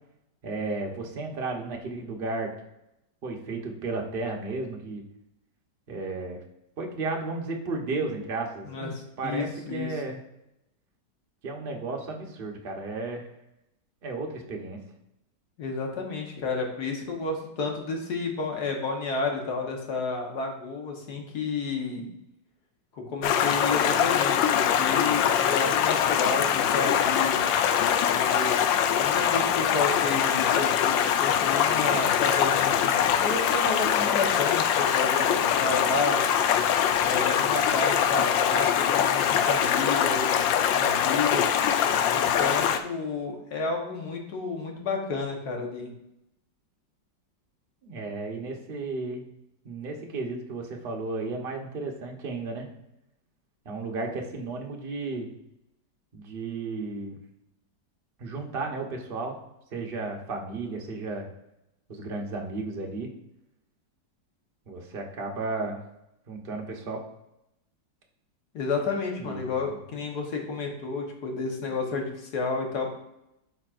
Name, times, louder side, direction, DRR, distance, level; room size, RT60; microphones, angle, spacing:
voice 1, 0.4-2.5 3.2-5.0 5.9-6.4 6.8-8.9 9.2-10.2 11.4-13.3 14.0-14.8 47.8-49.3 49.6-52.7 53.6-55.3 56.1-57.2 58.2-59.4 59.7-61.3 61.9-63.1 64.7-65.8 66.3-67.0 69.2-69.8, right 3 dB, 40° right, 1 dB, 1.0 m, -33 dB
voice 2, 8.6-9.9 15.6-22.1 22.9-27.4 28.1-36.2 37.0-41.5 42.1-45.9 68.5-72.9, left 4 dB, 60° left, 1 dB, 1.7 m, -31 dB
Stream, 23.2-42.8, left 9 dB, 85° left, 1.3 m, -23 dB
11.5 x 4.2 x 2.5 m, 0.85 s
omnidirectional pair, 2.0 m